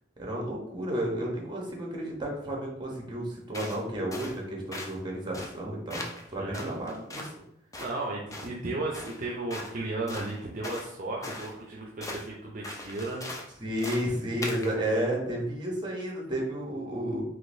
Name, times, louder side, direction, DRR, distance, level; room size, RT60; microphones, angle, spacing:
voice 1, 0.2-6.0 6.3-7.3 13.6-17.2, right 1 dB, 25° right, -1 dB, 0.9 m, -32 dB
sound 1, 3.5-3.8 4.1-4.4 4.7-5.0 5.3-5.6 5.9-6.3 6.5-7.4 7.7-7.9 8.3-8.5 8.9-9.2 9.5-9.7 10.1-10.9 11.2-11.5 12.0-12.3 12.6-13.5 13.8-14.1 14.4-14.7, left 2 dB, 20° left, 0.4 m, -39 dB
voice 2, 7.8-13.2 14.7-15.0, right 2 dB, 45° right, -3 dB, 0.5 m, -35 dB
3.7 x 2.9 x 2.6 m, 0.77 s
head